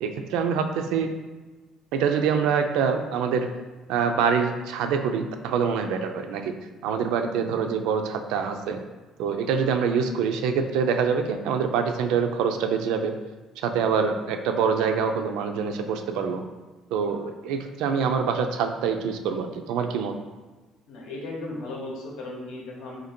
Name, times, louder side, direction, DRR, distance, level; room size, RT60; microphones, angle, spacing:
voice 1, 0.0-1.1 1.9-3.5 3.9-6.5 6.8-8.8 9.2-13.1 13.6-16.4 16.9-20.1, right 6 dB, 90° right, 6 dB, 0.3 m, -25 dB
voice 2, 20.9-23.0, left 2 dB, 75° left, -1 dB, 0.8 m, -36 dB
2.8 x 2.6 x 4.3 m, 1.2 s
cardioid pair, 130°, 0 cm